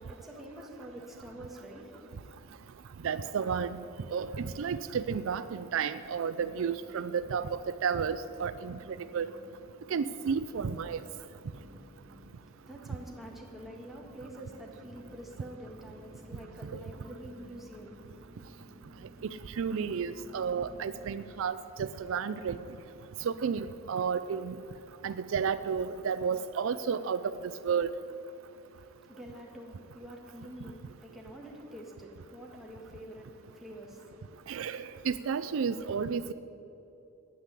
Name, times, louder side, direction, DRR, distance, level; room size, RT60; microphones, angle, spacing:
voice 1, 0.0-2.4 12.3-18.5 28.7-34.5, equal, ahead, -2 dB, 1.8 m, -47 dB
voice 2, 3.0-3.8 4.1-9.3 9.9-11.0 16.7-16.8 19.2-22.6 23.2-24.6 25.0-27.2 27.6-27.9 34.5-36.3, right 6 dB, 70° right, 13 dB, 0.4 m, -32 dB
sound 1, 6.2-21.4, equal, 40° right, 2.9 m, -55 dB
9.8 x 9.3 x 8.2 m, 3.0 s
head